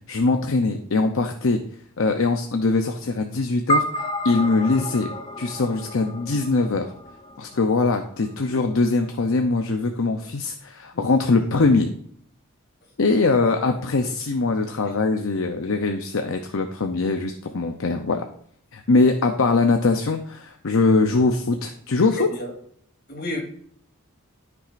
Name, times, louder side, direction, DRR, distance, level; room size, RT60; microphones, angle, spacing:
voice 1, 0.1-1.6 2.0-3.8 4.2-5.1 5.4-6.9 7.4-11.9 13.0-18.2 18.7-22.3, left 3 dB, 70° left, 0.6 m, -22 dB
sound 1, 3.7-8.3, equal, 25° left, 0.4 m, -30 dB
voice 2, 22.1-22.5 23.1-23.4, left 1 dB, 50° left, 3.0 m, -33 dB
13.0 x 6.0 x 2.5 m
head